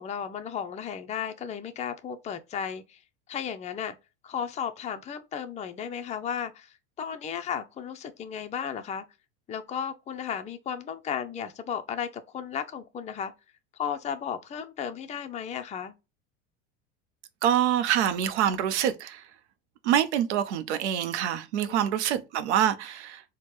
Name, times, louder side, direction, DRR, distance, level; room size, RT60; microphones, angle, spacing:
voice 1, 0.0-3.0 3.3-3.9 4.2-6.7 7.0-9.0 9.5-13.3 13.8-15.9 21.6-21.8, left 8 dB, 20° left, 0.5 m, -34 dB
voice 2, 17.4-19.2 19.8-23.2, right 10 dB, 85° right, 0.7 m, -25 dB
4.3 x 2.2 x 3.1 m
supercardioid pair, 95°, 33 cm